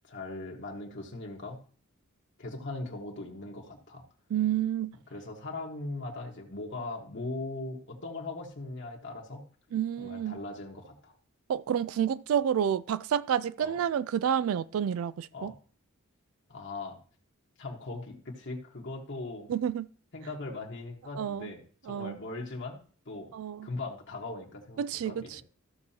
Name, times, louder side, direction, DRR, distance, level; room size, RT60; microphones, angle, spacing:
voice 1, 0.1-1.6 2.4-4.0 5.1-9.5 10.0-11.1 13.6-13.8 15.3-15.6 16.5-17.0 17.6-19.5 20.1-23.3 23.6-25.4, left 2 dB, 55° left, 1.4 m, -39 dB
voice 2, 4.3-5.0 9.7-10.4 11.5-15.5 19.5-19.9 21.2-21.5 21.9-22.2 23.3-23.7 24.8-25.4, right 9 dB, 70° right, 0.3 m, -29 dB
14.5 x 6.2 x 2.8 m
head